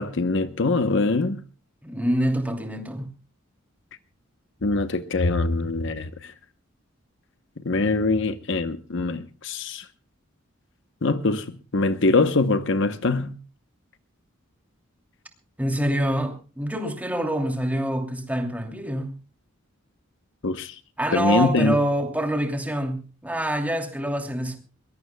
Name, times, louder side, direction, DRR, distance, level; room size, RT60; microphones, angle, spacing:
voice 1, 0.0-1.4 4.6-6.3 7.6-9.8 11.0-13.3 20.4-20.7 21.1-21.8, left 3 dB, 60° left, 0.9 m, -23 dB
voice 2, 1.8-3.1 15.6-19.1 21.0-24.6, right 1 dB, 5° right, 2.8 m, -26 dB
22.5 x 21.0 x 2.3 m
head